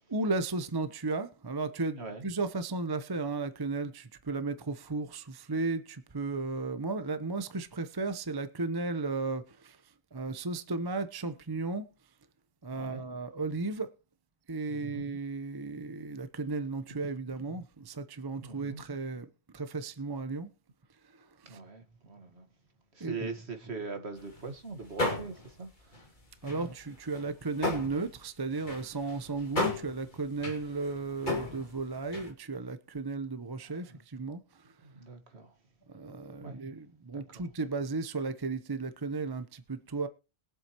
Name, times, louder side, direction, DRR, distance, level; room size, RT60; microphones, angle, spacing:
voice 1, 0.0-9.8 10.1-11.9 12.6-13.9 14.5-19.3 19.5-20.5 21.2-21.6 23.0-23.3 26.4-34.4 35.9-40.1, right 3 dB, 25° right, 0.6 m, -35 dB
voice 2, 2.0-2.3 12.7-13.0 14.7-15.0 18.4-18.8 21.4-22.4 22.9-26.0 26.5-26.7 33.9-34.0 34.8-35.5 36.4-36.6 37.1-37.5, right 4 dB, 50° right, 1.8 m, -42 dB
sound 1, 24.2-24.4 24.7-25.6 25.9-28.2 28.5-32.3, left 2 dB, 35° left, 2.6 m, -35 dB
21.5 x 8.0 x 3.0 m
omnidirectional pair, 1.4 m